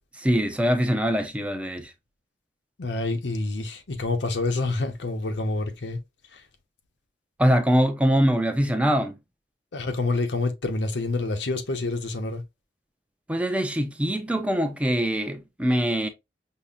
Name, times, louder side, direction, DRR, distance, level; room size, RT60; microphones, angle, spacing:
voice 1, 0.2-1.9 7.4-9.2 13.3-16.1, equal, 5° right, 0.4 m, -23 dB
voice 2, 2.8-6.0 6.3-6.4 9.7-12.4, left 2 dB, 90° left, 0.7 m, -27 dB
5.4 x 2.1 x 2.4 m
head